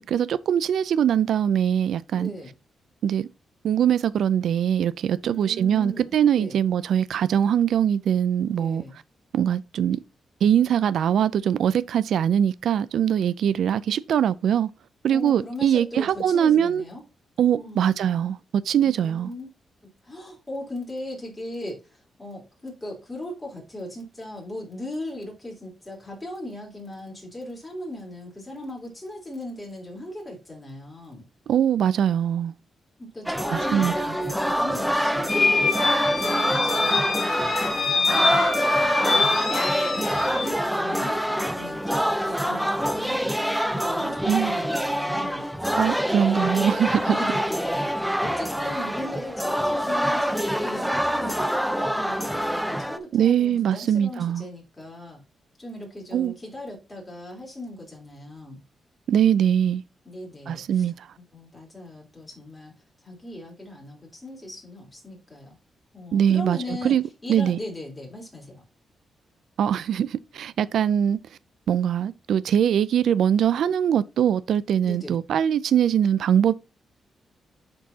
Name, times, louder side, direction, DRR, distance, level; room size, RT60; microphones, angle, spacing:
voice 1, 0.0-2.3 3.0-3.3 3.6-8.8 9.3-10.0 10.4-14.7 15.0-16.8 17.4-19.3 31.5-32.5 33.5-34.2 44.3-44.6 45.8-47.2 53.1-54.4 56.1-56.3 59.1-59.8 60.5-61.1 66.1-67.0 67.3-67.6 69.6-71.2 71.7-76.5, right 9 dB, 80° right, 0.4 m, -22 dB
voice 2, 2.1-2.5 5.2-6.5 8.5-9.0 15.1-17.0 17.5-17.8 18.8-19.5 20.0-31.2 33.0-37.5 37.9-45.5 47.1-55.2 55.6-58.6 60.0-60.9 61.3-62.7 63.0-65.6 65.9-67.0 67.2-68.6 74.8-75.2, left 1 dB, 15° left, 3.7 m, -38 dB
sound 1, 33.3-53.0, equal, ahead, 0.6 m, -25 dB
sound 2, 35.3-40.5, left 4 dB, 40° left, 1.5 m, -25 dB
10.0 x 4.5 x 2.8 m
cardioid pair, 105°, 0 cm